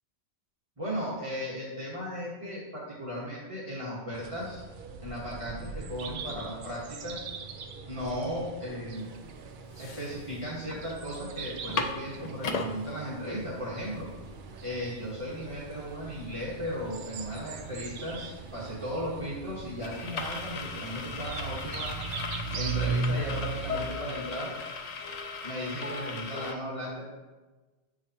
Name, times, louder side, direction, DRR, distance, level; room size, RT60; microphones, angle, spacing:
voice 1, 0.8-4.6 5.0-7.2 7.9-9.1 9.8-14.1 14.6-22.3 22.5-24.5 25.4-27.1, equal, 30° right, -9 dB, 1.4 m, -36 dB
sound 1, 4.1-23.9, right 4 dB, 60° right, 0.6 m, -39 dB
sound 2, 9.1-9.2 9.6-10.8 11.1-11.2 11.5-12.7 13.3-13.4 13.7-26.5, left 4 dB, 50° left, 0.5 m, -38 dB
8.0 x 4.8 x 2.8 m, 1.2 s
omnidirectional pair, 1.1 m